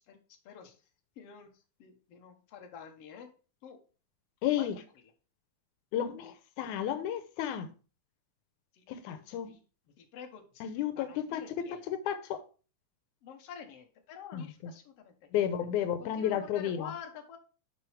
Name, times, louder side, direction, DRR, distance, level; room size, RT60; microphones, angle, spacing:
voice 1, 1.2-1.5 1.8-3.3 3.6-3.8 4.6-4.7 8.7-9.1 9.5-9.6 10.0-11.8 13.2-15.1 16.0-17.4, left 7 dB, 60° left, 2.1 m, -48 dB
voice 2, 4.4-4.8 5.9-7.7 8.9-9.5 10.6-12.4 14.3-14.7 15.3-16.9, left 10 dB, 90° left, 2.2 m, -32 dB
10.5 x 5.3 x 3.4 m
omnidirectional pair, 3.5 m